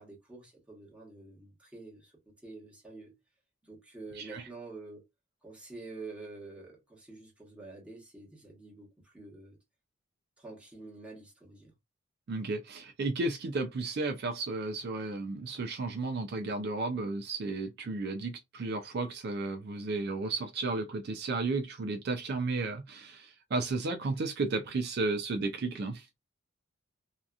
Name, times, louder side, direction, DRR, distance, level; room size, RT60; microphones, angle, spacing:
voice 1, 0.0-2.1 2.4-3.1 3.6-5.0 5.4-9.6 10.4-11.7, right 3 dB, 5° right, 1.1 m, -47 dB
voice 2, 12.3-26.1, right 3 dB, 50° right, 0.4 m, -33 dB
2.7 x 2.4 x 2.3 m
head